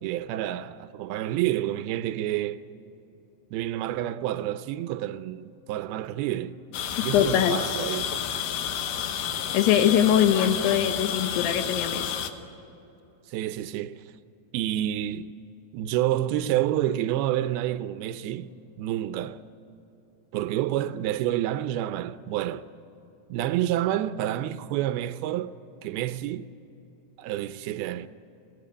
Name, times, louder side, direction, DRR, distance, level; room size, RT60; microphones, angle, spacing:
voice 1, 0.0-2.7 3.5-6.6 7.0-8.1 13.3-14.0 14.5-15.3 15.7-19.4 20.3-22.6 23.3-25.5 25.8-26.5 27.2-28.1, right 13 dB, 80° right, 2.4 m, -29 dB
sound 1, 6.7-12.3, left 8 dB, 70° left, 2.3 m, -30 dB
voice 2, 7.1-7.6 9.5-12.1, left 10 dB, 85° left, 3.1 m, -22 dB
22.5 x 17.0 x 9.9 m
omnidirectional pair, 4.6 m